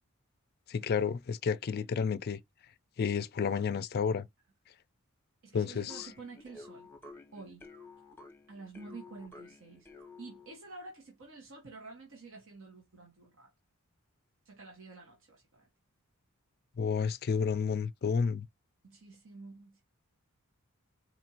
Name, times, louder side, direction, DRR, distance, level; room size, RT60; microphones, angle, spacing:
voice 1, 0.7-2.4 3.0-4.3 5.5-6.1 16.8-18.5, left 6 dB, 45° left, 0.4 m, -31 dB
voice 2, 5.4-6.9 7.3-7.7 8.5-9.9 10.2-13.5 14.4-15.7 18.8-19.8, right 3 dB, 60° right, 1.2 m, -49 dB
sound 1, 5.9-10.7, left 3 dB, 10° left, 0.9 m, -52 dB
4.4 x 2.5 x 2.9 m
head